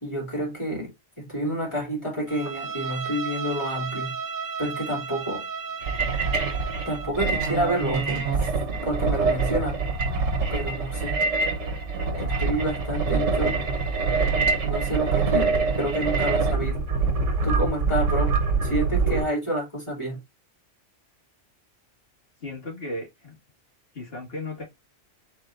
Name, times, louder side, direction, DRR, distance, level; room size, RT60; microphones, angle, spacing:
voice 1, 0.0-4.2 4.6-5.5 6.8-9.8 10.5-11.2 12.1-13.6 14.6-16.9 17.4-20.2, right 1 dB, 25° left, 2.9 m, -29 dB
Bowed string instrument, 2.3-7.2, right 6 dB, 50° right, 0.9 m, -34 dB
sound 1, 5.8-19.2, right 4 dB, 70° right, 1.4 m, -25 dB
voice 2, 22.4-23.4 23.9-24.6, left 1 dB, 55° left, 2.4 m, -35 dB
4.8 x 4.3 x 2.6 m
omnidirectional pair, 1.2 m